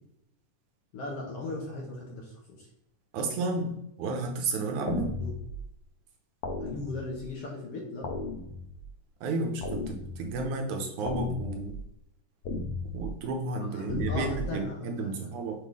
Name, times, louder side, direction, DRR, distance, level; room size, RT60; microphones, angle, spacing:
voice 1, 0.9-2.7 5.2-5.3 6.6-8.1 13.7-15.3, left 2 dB, 60° left, -2 dB, 1.7 m, -38 dB
voice 2, 3.1-5.1 9.2-11.8 12.9-15.5, right 3 dB, 75° right, 2 dB, 2.1 m, -32 dB
sound 1, 4.9-5.6 6.4-7.2 8.0-8.9 9.6-10.4 11.0-11.8 12.4-13.1 13.9-14.5, left 3 dB, 85° left, 1.2 m, -35 dB
6.6 x 3.7 x 4.7 m, 0.80 s
omnidirectional pair, 3.8 m